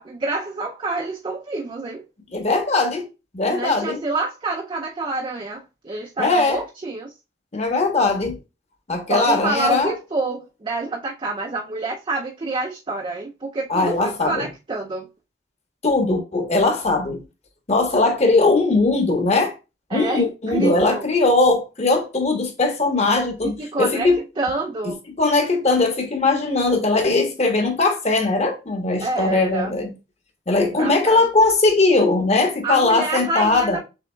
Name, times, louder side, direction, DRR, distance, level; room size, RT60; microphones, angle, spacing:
voice 1, 0.0-2.0 3.5-7.1 9.1-15.1 19.9-21.1 23.4-24.1 24.4-25.0 29.0-29.8 30.6-31.2 32.6-33.8, right 3 dB, 30° right, 0.5 m, -27 dB
voice 2, 2.3-3.1 3.3-4.0 6.2-6.6 7.5-8.4 8.9-9.9 13.7-14.5 15.8-17.2 17.7-19.5 19.9-24.2 25.2-29.9 30.5-33.8, left 3 dB, 40° left, 1.2 m, -19 dB
6.8 x 3.4 x 2.3 m
head